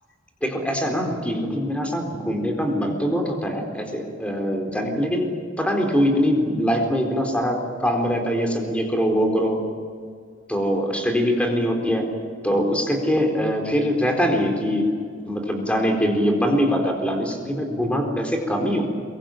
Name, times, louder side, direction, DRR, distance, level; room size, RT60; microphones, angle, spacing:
voice 1, 0.4-9.6 10.5-12.0 12.4-14.9 15.3-18.9, equal, 5° left, 3 dB, 4.2 m, -23 dB
24.0 x 22.5 x 9.2 m, 2.1 s
head